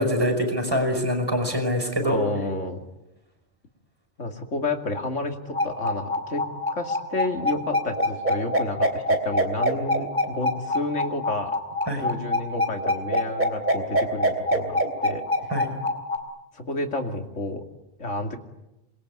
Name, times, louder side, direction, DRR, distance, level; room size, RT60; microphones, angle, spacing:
voice 1, 0.0-2.2 11.9-12.1 15.5-15.7, equal, 15° right, 6 dB, 5.5 m, -24 dB
voice 2, 2.0-2.8 4.2-6.4 6.7-11.6 12.0-15.2 16.5-17.6 18.0-18.4, left 2 dB, 65° left, 4 dB, 3.0 m, -30 dB
sound 1, 5.5-16.2, left 1 dB, 35° right, 3.5 m, -24 dB
27.5 x 22.0 x 9.7 m, 0.96 s
omnidirectional pair, 1.4 m